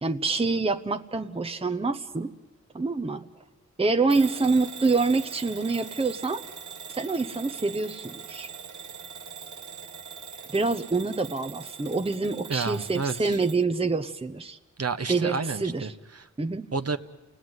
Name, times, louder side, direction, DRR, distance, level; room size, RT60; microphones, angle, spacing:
voice 1, 0.0-2.3 2.7-3.3 3.8-6.4 6.9-8.5 10.5-14.6 15.1-15.9 16.4-16.6, right 3 dB, 20° right, 8 dB, 0.9 m, -26 dB
Bell / Alarm, 4.1-13.6, right 6 dB, 75° right, 1.2 m, -42 dB
voice 2, 12.5-13.4 14.8-16.3 16.7-17.0, right 4 dB, 55° right, 8 dB, 1.3 m, -30 dB
29.5 x 18.5 x 9.6 m, 1.2 s
wide cardioid pair, 75°, 30 cm